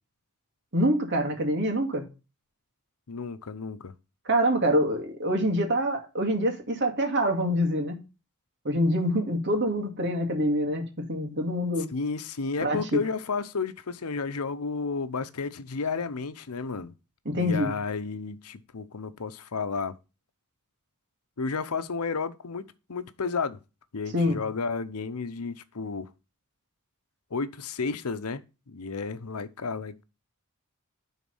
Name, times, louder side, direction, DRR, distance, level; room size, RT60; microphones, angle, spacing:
voice 1, 0.7-2.1 4.3-8.0 8.6-11.9 12.6-13.0 17.3-17.7 24.1-24.5, equal, 55° right, 2.3 m, -25 dB
voice 2, 3.1-3.9 11.9-16.9 17.4-19.9 21.4-23.6 23.9-26.1 27.3-30.0, left 4 dB, 90° left, 0.8 m, -32 dB
10.5 x 4.1 x 5.4 m
head